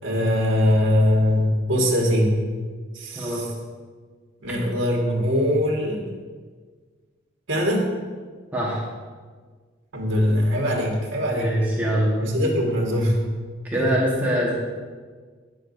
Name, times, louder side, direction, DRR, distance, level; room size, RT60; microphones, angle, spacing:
voice 1, 0.0-2.4 2.9-3.5 4.4-6.0 7.5-7.9 9.9-11.6 12.2-13.2 13.7-13.8, left 1 dB, 70° right, -2 dB, 1.7 m, -22 dB
voice 2, 3.1-3.5 8.5-8.8 11.3-12.2 13.7-14.5, equal, 10° right, -6 dB, 1.3 m, -23 dB
9.6 x 6.8 x 2.7 m, 1.5 s
head